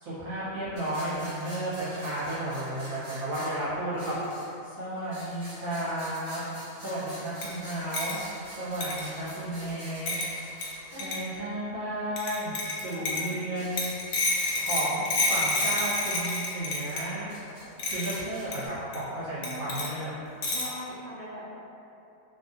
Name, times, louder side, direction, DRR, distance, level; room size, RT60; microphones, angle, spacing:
voice 1, 0.0-4.1 4.6-6.4 6.8-10.1 11.0-13.9 14.6-17.3 17.9-20.1, right 1 dB, 75° right, -11 dB, 1.4 m, -33 dB
sound 1, 0.8-4.7 5.0-11.1 12.8-12.9 13.3-14.9 16.6-18.7, equal, 55° right, 1.0 m, -47 dB
sound 2, 7.4-7.5 7.9-8.2 8.8-9.1 10.1-10.3 10.6-10.7 11.0-11.2 12.2-13.3 13.8-17.1 17.8-18.2 18.5-18.6 18.9-19.0 19.4-19.9 20.4-20.8, left 2 dB, 90° left, 1.1 m, -28 dB
voice 2, 19.4-19.8 20.5-21.6, equal, 45° left, -12 dB, 0.9 m, -41 dB
2.9 x 2.6 x 2.6 m, 2.7 s
omnidirectional pair, 1.5 m